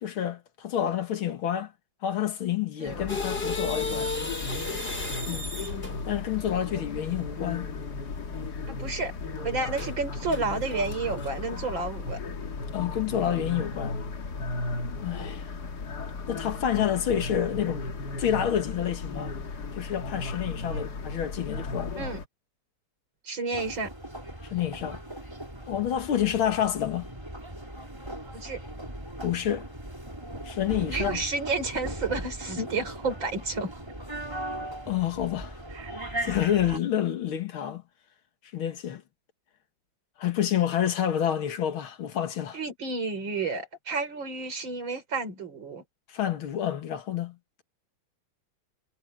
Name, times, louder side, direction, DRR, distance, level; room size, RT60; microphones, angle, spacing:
voice 1, 0.0-1.7 2.0-4.1 5.3-5.5 6.1-7.7 12.7-14.0 15.0-15.4 16.3-17.9 18.2-19.3 19.8-22.0 24.4-25.0 25.7-27.1 29.2-29.7 30.4-31.2 34.9-35.6 36.2-37.8 38.5-39.0 40.2-42.6 46.1-47.4, left 10 dB, 80° left, 2.3 m, -28 dB
sound 1, 2.9-22.3, left 3 dB, 50° left, 2.2 m, -35 dB
sound 2, 3.1-6.2 9.8-10.0 10.3-11.3, left 2 dB, 25° left, 4.9 m, -34 dB
voice 2, 8.7-9.1 9.4-12.2 20.7-20.9 22.0-22.2 23.2-23.9 28.3-28.6 30.8-33.7 35.7-35.9 42.5-45.8, right 3 dB, 65° right, 4.7 m, -31 dB
sound 3, 23.5-36.8, right 1 dB, 10° right, 4.0 m, -38 dB
omnidirectional pair, 2.2 m